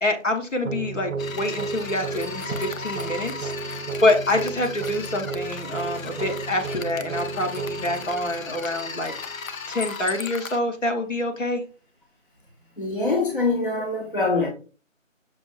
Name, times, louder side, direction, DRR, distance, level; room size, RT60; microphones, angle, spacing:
voice 1, 0.0-9.1 9.7-11.6, left 1 dB, 65° left, 1.0 m, -26 dB
sound 1, 0.6-9.6, right 4 dB, 70° right, 0.5 m, -34 dB
sound 2, 1.2-10.6, left 5 dB, 85° left, 0.7 m, -36 dB
voice 2, 12.8-14.5, left 3 dB, 40° left, 0.7 m, -24 dB
6.1 x 2.4 x 2.5 m
figure-of-eight pair, 180°, 40 cm